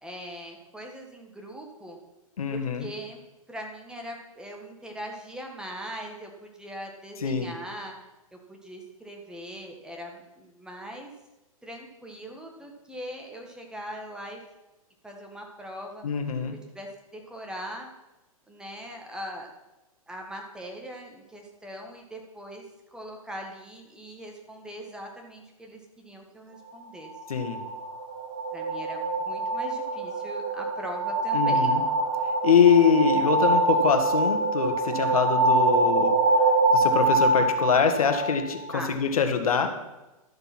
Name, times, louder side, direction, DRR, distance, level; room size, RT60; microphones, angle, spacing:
voice 1, 0.0-2.0 2.5-3.2 3.5-7.9 8.3-11.1 11.6-14.4 15.0-16.0 16.7-17.9 18.5-19.5 20.1-22.6 22.9-27.1 28.5-31.7 32.8-32.9 38.7-38.9, equal, 5° right, 1 dB, 1.5 m, -40 dB
voice 2, 2.4-2.9 7.2-7.5 16.0-16.6 27.3-27.6 31.3-31.8 32.4-36.1 36.7-39.7, left 6 dB, 75° left, 6 dB, 1.7 m, -23 dB
sound 1, 27.0-38.7, right 2 dB, 25° right, 2.2 m, -24 dB
12.0 x 6.8 x 6.0 m, 1.0 s
hypercardioid pair, 135°, 19 cm